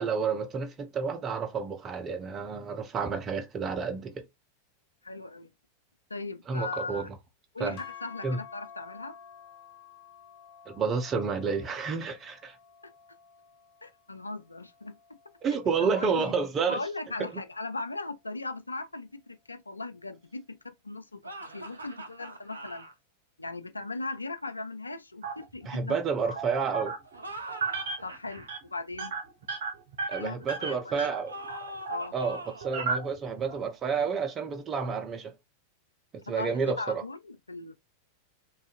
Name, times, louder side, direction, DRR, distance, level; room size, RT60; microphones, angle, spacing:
voice 1, 0.0-4.2 6.5-7.1 7.6-7.8 8.2-8.4 10.7-12.6 15.4-16.8 17.2-17.4 25.7-26.9 30.1-31.4 32.1-35.3 36.3-37.0, right 5 dB, 25° right, 0.6 m, -30 dB
voice 2, 5.0-5.5 6.1-7.1 7.5-9.2 12.8-12.9 13.8-15.2 15.6-16.3 16.7-22.9 23.4-26.0 26.2-26.4 28.0-29.2 30.2-31.1 31.9-32.2 36.3-37.8, left 3 dB, 80° left, 0.3 m, -38 dB
sound 1, 7.8-16.0, left 8 dB, 40° left, 0.7 m, -51 dB
sound 2, 21.2-22.9 27.0-28.5 31.3-32.7, right 1 dB, 80° right, 0.5 m, -42 dB
sound 3, 25.2-25.8 26.4-27.2 27.5-28.1 28.4-28.6 28.9-32.1 32.6-33.6, right 4 dB, 60° right, 0.8 m, -34 dB
2.6 x 2.4 x 2.4 m
figure-of-eight pair, 90°, 0 cm